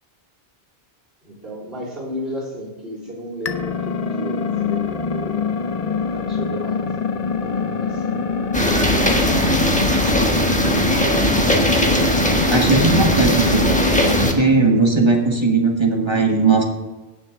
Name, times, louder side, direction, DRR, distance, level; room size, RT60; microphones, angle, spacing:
voice 1, 1.2-5.3 5.8-6.9 7.4-8.2 8.6-9.5, equal, 65° right, -6 dB, 3.8 m, -33 dB
sound 1, 3.4-14.3, left 4 dB, 45° left, 0.6 m, -24 dB
sound 2, 8.5-14.3, equal, 5° left, 1.2 m, -19 dB
voice 2, 12.5-13.7 14.2-16.6, right 3 dB, 25° right, 1 dB, 1.5 m, -17 dB
17.5 x 6.3 x 3.7 m, 1.2 s
omnidirectional pair, 1.1 m